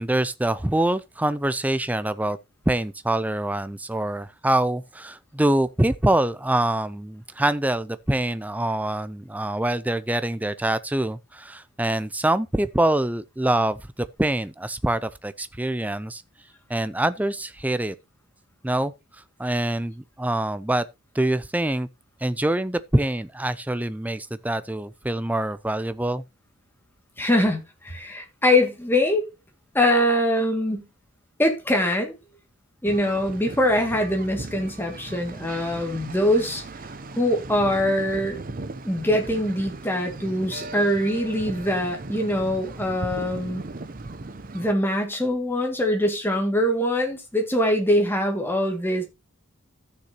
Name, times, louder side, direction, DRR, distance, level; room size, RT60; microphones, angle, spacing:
voice 1, 0.0-2.4 2.7-16.2 16.7-17.9 18.6-18.9 19.4-20.9 21.1-21.9 22.2-26.2, right 1 dB, 5° right, 0.4 m, -25 dB
voice 2, 27.2-29.3 29.7-30.9 31.4-32.2 32.8-36.6 37.2-38.4 38.9-43.6 44.5-49.0, left 1 dB, 10° left, 2.2 m, -23 dB
sound 1, 32.8-44.7, right 2 dB, 40° right, 0.7 m, -37 dB
14.5 x 6.7 x 2.9 m
head